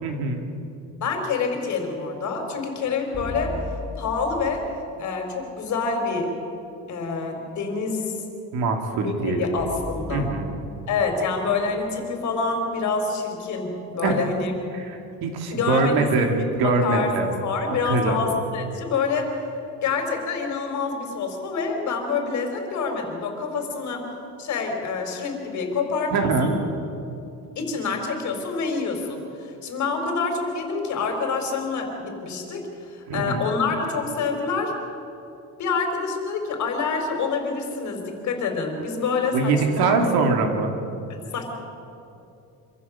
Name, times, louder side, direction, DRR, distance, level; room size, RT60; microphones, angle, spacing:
voice 1, 0.0-0.4 8.5-9.5 10.1-10.5 14.0-14.2 14.7-17.3 17.8-18.2 26.1-26.5 33.1-33.4 39.3-40.7, right 3 dB, 75° right, 3 dB, 3.0 m, -23 dB
voice 2, 1.0-3.6 4.0-4.7 5.0-6.3 6.9-8.2 8.9-10.3 10.9-14.5 15.5-16.1 16.6-17.1 17.4-19.4 19.8-24.1 24.4-26.6 27.5-34.7 35.6-40.3 41.1-41.5, left 4 dB, 50° left, 3 dB, 4.3 m, -27 dB
sound 1, 3.1-5.3 9.6-12.8, left 2 dB, 25° left, 3.0 m, -38 dB
26.0 x 15.0 x 7.4 m, 2.8 s
cardioid pair, 145°, 38 cm